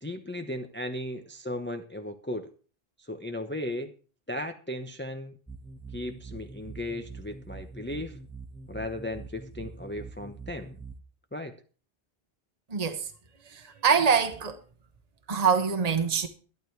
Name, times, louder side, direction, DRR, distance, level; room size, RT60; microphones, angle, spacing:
voice 1, 0.0-2.5 3.1-3.9 4.3-5.3 5.9-8.2 8.7-10.7 11.3-11.5, left 1 dB, 10° left, 0.9 m, -36 dB
sound 1, 5.5-11.0, right 4 dB, 5° right, 1.4 m, -44 dB
voice 2, 12.7-13.1 13.4-14.6 15.3-16.3, right 6 dB, 40° right, 1.3 m, -25 dB
12.5 x 12.0 x 4.6 m
omnidirectional pair, 1.0 m